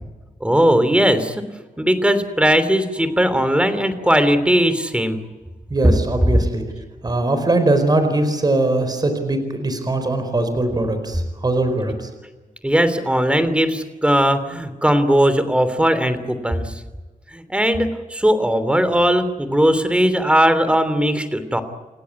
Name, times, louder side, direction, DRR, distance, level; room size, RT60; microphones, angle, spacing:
voice 1, 0.4-1.4 1.8-5.2 12.6-16.7 17.3-21.6, equal, 10° right, 11 dB, 3.1 m, -18 dB
voice 2, 5.7-6.6 7.0-12.1, right 2 dB, 30° right, 8 dB, 4.6 m, -21 dB
29.5 x 16.0 x 9.6 m, 1.2 s
wide cardioid pair, 110°, 14 cm